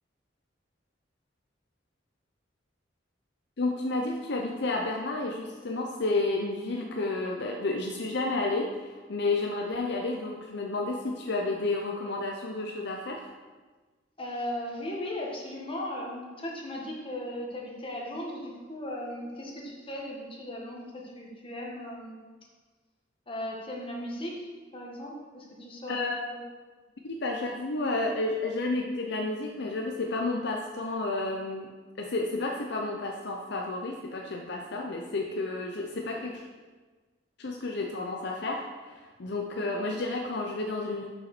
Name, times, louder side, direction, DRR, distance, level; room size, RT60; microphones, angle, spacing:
voice 1, 3.6-13.3 25.9-26.3 27.0-31.7 32.0-36.4 37.4-41.1, left 2 dB, 60° left, 1 dB, 0.7 m, -31 dB
voice 2, 14.2-22.2 23.3-26.0 26.3-26.4 39.5-39.9, left 1 dB, 30° left, -2 dB, 1.6 m, -37 dB
6.6 x 5.8 x 6.0 m, 1.4 s
head